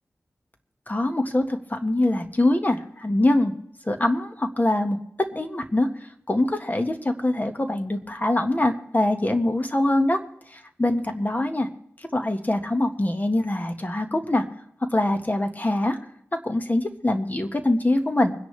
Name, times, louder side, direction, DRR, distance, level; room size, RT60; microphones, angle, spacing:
voice 1, 0.9-3.5 3.8-5.9 6.3-10.2 10.5-11.7 12.0-14.4 14.9-16.0 16.4-18.3, left 1 dB, 30° left, 6 dB, 1.7 m, -23 dB
24.5 x 10.5 x 3.4 m, 0.73 s
cardioid pair, 50°, 6 cm